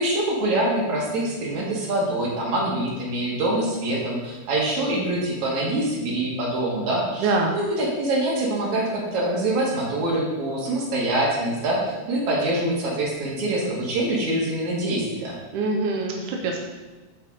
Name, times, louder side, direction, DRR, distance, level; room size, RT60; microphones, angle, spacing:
voice 1, 0.0-15.4, right 1 dB, 55° right, -4 dB, 2.8 m, -25 dB
voice 2, 7.2-7.6 15.5-16.7, right 3 dB, 80° right, 1 dB, 1.8 m, -24 dB
8.7 x 5.6 x 4.0 m, 1.2 s
omnidirectional pair, 4.6 m